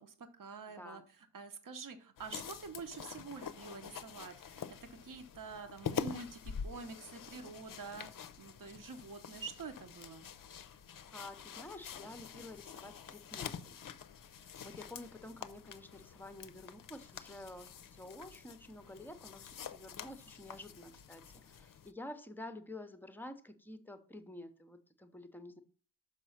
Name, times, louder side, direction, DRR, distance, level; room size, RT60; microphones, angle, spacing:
voice 1, 0.0-4.6 4.9-8.1 8.4-10.3, right 4 dB, 50° right, 7 dB, 1.0 m, -47 dB
sound 1, 2.2-21.9, left 8 dB, 55° left, 0.5 m, -47 dB
voice 2, 11.1-13.8 14.6-25.6, left 1 dB, 5° left, 9 dB, 0.7 m, -50 dB
6.1 x 5.0 x 5.6 m, 0.42 s
wide cardioid pair, 110°, 40 cm